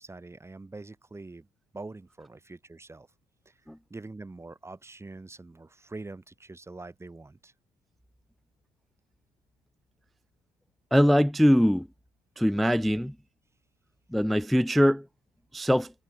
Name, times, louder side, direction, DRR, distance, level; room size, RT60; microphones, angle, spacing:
voice 1, 0.0-1.5 1.7-3.1 3.5-3.6 3.9-7.5, right 3 dB, 15° right, 6.0 m, -44 dB
voice 2, 10.9-11.9 12.4-13.1 14.1-15.1 15.5-15.9, equal, ahead, 0.3 m, -22 dB
cardioid pair, 110°, 17 cm